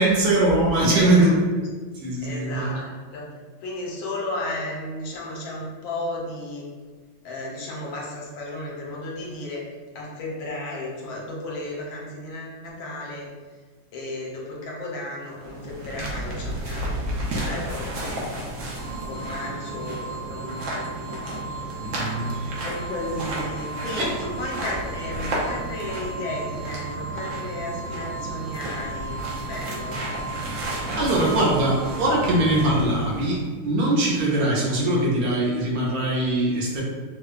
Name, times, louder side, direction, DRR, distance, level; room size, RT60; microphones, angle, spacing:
voice 1, 0.0-1.3 1.9-2.7 21.8-22.6 24.0-24.2 31.0-36.8, right 1 dB, 80° right, -4 dB, 1.5 m, -22 dB
voice 2, 0.9-1.3 2.2-3.3 3.6-6.7 7.2-13.3 13.9-18.4 18.7-30.0, left 2 dB, 75° left, -3 dB, 1.4 m, -34 dB
sound 1, 15.3-33.5, right 1 dB, 65° right, 0.9 m, -32 dB
sound 2, 18.7-32.7, right 4 dB, 50° left, 0.6 m, -37 dB
4.6 x 2.2 x 2.3 m, 1.4 s
omnidirectional pair, 2.2 m